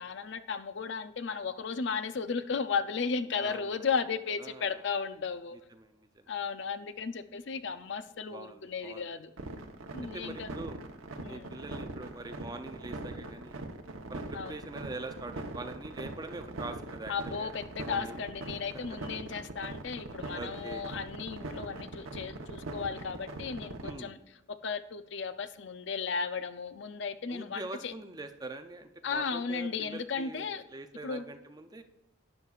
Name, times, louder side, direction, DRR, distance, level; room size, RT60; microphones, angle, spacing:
voice 1, 0.0-5.6 6.3-9.3 9.9-10.5 11.2-11.6 14.3-14.6 17.1-24.2 24.5-27.9 29.0-30.6 31.0-31.2, left 5 dB, 60° left, 12 dB, 0.5 m, -35 dB
voice 2, 3.4-3.8 4.4-4.8 5.7-6.3 8.3-9.1 10.0-10.8 11.2-13.7 14.1-17.5 17.8-18.2 20.3-20.8 23.8-24.1 27.3-31.8, right 2 dB, 20° right, 8 dB, 0.5 m, -43 dB
sound 1, 9.4-23.9, right 2 dB, 85° right, 1.0 m, -41 dB
12.5 x 9.3 x 2.4 m, 0.93 s
head